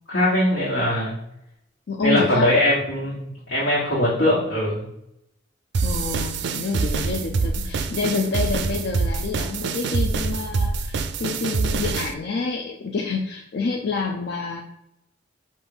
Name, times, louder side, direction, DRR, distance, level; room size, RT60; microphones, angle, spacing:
voice 1, 0.1-1.2 2.0-4.9, left 1 dB, 75° left, -10 dB, 1.6 m, -21 dB
voice 2, 1.9-2.6 5.8-14.6, left 4 dB, 55° left, 1 dB, 0.4 m, -28 dB
sound 1, 5.7-12.1, right 4 dB, 60° right, 0.4 m, -25 dB
5.3 x 2.5 x 3.8 m, 0.80 s
head